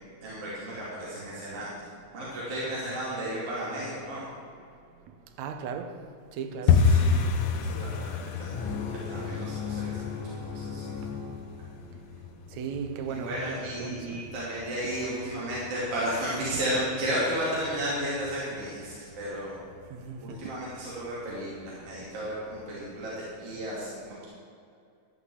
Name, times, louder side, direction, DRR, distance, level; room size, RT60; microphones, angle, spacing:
voice 1, 0.2-1.7 2.1-4.3 6.6-8.7 9.1-10.9 13.1-19.6 20.2-24.3, right 1 dB, 50° right, 3.6 m, -33 dB
voice 2, 5.4-5.9 6.4-6.8 12.6-14.2 16.5-16.6 20.1-20.2, right 6 dB, 70° right, 2.0 m, -36 dB
sound 1, 6.7-17.4 17.6-18.4 18.6-18.9 19.2-19.6 19.8-20.0 20.5-21.0 21.3-21.4 21.9-22.0, left 5 dB, 85° left, 1.3 m, -30 dB
sound 2, 8.5-12.1, left 6 dB, 50° left, 1.7 m, -36 dB
13.5 x 5.8 x 8.0 m
omnidirectional pair, 3.5 m